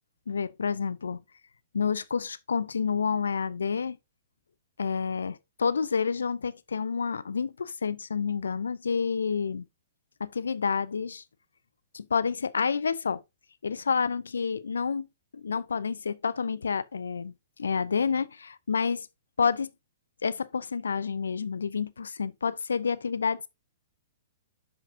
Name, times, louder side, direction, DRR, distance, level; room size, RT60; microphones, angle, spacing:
voice 1, 0.3-1.2 1.7-4.0 4.8-9.7 10.2-11.2 11.9-13.2 13.6-15.1 15.3-17.3 17.6-19.1 19.4-19.7 20.2-23.5, left 5 dB, 75° left, 0.5 m, -29 dB
10.5 x 5.8 x 2.7 m
figure-of-eight pair, 115°, 0 cm